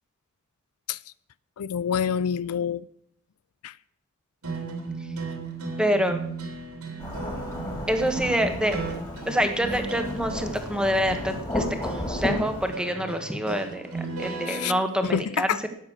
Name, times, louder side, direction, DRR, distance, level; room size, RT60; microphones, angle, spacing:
voice 1, 1.6-2.9 3.6-3.7 14.5-14.7 15.0-15.6, left 7 dB, 75° left, 0.4 m, -27 dB
sound 1, 4.4-14.7, right 2 dB, 85° right, 3.4 m, -36 dB
voice 2, 5.8-6.3 7.9-8.8 9.3-15.7, equal, 5° right, 1.4 m, -26 dB
Thunderstorm / Rain, 7.0-12.7, left 1 dB, 20° left, 3.3 m, -33 dB
13.0 x 9.0 x 7.2 m
head